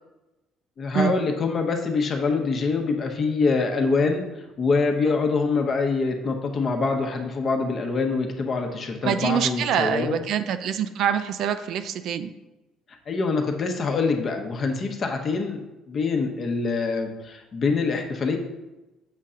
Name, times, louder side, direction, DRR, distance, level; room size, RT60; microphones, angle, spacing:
voice 1, 0.8-4.2 4.6-10.3 13.1-18.4, left 4 dB, 30° left, 3 dB, 0.9 m, -25 dB
voice 2, 9.0-12.3, right 8 dB, 55° right, 11 dB, 0.4 m, -25 dB
7.4 x 3.7 x 5.6 m, 1.0 s
cardioid pair, 170°, 0 cm